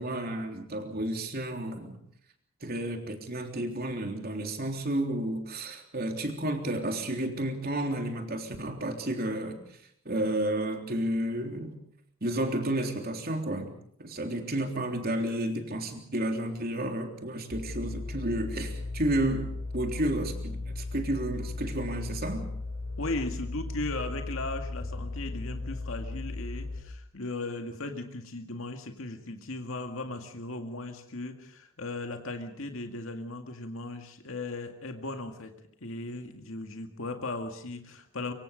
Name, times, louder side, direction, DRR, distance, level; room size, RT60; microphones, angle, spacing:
voice 1, 0.0-2.0 2.6-9.8 10.1-11.8 12.2-13.7 14.0-22.5, right 1 dB, 45° right, 4 dB, 3.5 m, -31 dB
sound 1, 17.5-26.8, left 2 dB, 45° left, 5.8 m, -36 dB
voice 2, 23.0-35.5 35.8-38.3, left 2 dB, 70° left, 5 dB, 2.1 m, -37 dB
25.0 x 24.5 x 5.2 m, 0.66 s
head